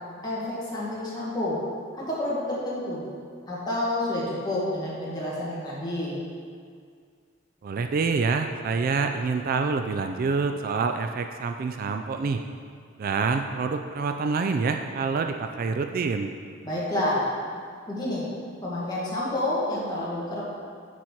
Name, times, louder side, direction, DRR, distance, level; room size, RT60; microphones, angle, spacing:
voice 1, 0.2-1.6 1.9-3.1 3.5-6.2 16.6-17.3 17.9-18.3 18.6-20.4, left 1 dB, 20° left, -7 dB, 1.8 m, -29 dB
voice 2, 7.6-12.4 13.0-16.3, right 4 dB, 45° right, 6 dB, 0.3 m, -26 dB
9.4 x 4.2 x 4.5 m, 2.1 s
head